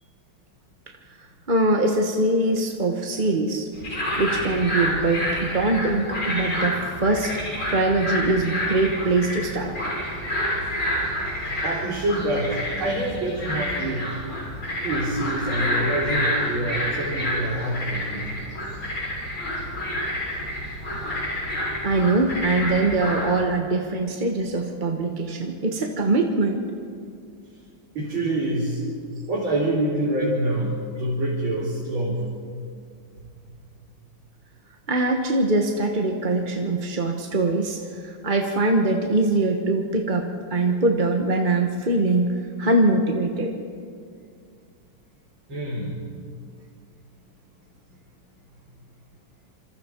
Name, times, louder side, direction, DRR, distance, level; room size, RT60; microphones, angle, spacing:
voice 1, 1.2-3.7 4.2-7.4 7.7-9.7 21.8-26.6 34.9-43.5, right 2 dB, 30° right, 2 dB, 1.1 m, -23 dB
sound 1, 3.7-23.3, left 1 dB, 80° left, 7.6 m, -28 dB
voice 2, 11.6-14.1 14.8-18.3 27.9-28.8 29.3-32.2 33.2-33.3 45.5-45.9, right 1 dB, 65° right, -6 dB, 4.3 m, -26 dB
26.5 x 26.5 x 4.6 m, 2.3 s
omnidirectional pair, 2.4 m